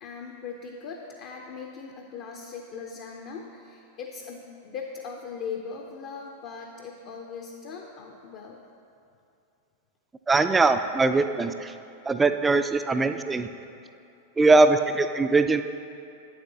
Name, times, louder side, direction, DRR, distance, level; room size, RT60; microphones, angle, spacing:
voice 1, 0.0-8.6, left 5 dB, 45° left, 1 dB, 0.5 m, -39 dB
voice 2, 10.3-11.7 12.1-13.5 14.4-15.6, right 3 dB, 15° right, 9 dB, 0.3 m, -21 dB
8.6 x 7.4 x 2.7 m, 2.6 s
figure-of-eight pair, 90°, 0 cm